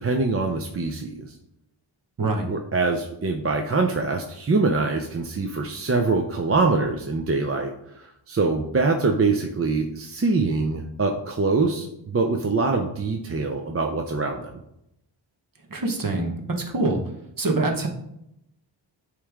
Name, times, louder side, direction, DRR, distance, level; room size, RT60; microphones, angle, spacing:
voice 1, 0.0-1.3 2.5-7.7 8.3-14.5, right 3 dB, 30° right, 3 dB, 0.6 m, -24 dB
voice 2, 15.7-17.0 17.4-17.9, right 2 dB, 45° right, 2 dB, 1.1 m, -24 dB
8.3 x 3.2 x 3.6 m, 0.80 s
wide cardioid pair, 70°, 46 cm